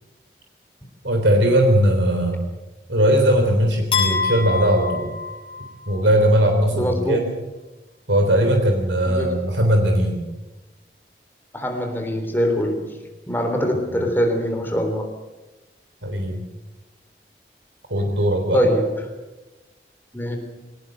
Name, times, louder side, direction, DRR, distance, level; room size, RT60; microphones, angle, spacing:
voice 1, 1.0-2.4 2.9-5.1 5.9-7.4 8.1-10.2 13.9-14.0 16.0-16.4 17.9-18.6, equal, 90° right, 4 dB, 3.6 m, -19 dB
sound 1, 3.9-6.0, left 5 dB, 30° left, 6.6 m, -26 dB
voice 2, 6.7-7.2 9.0-9.3 11.5-13.0 13.3-15.1 18.5-18.9 20.1-20.4, equal, 10° left, 4 dB, 3.5 m, -23 dB
21.5 x 18.5 x 7.9 m, 1.1 s
head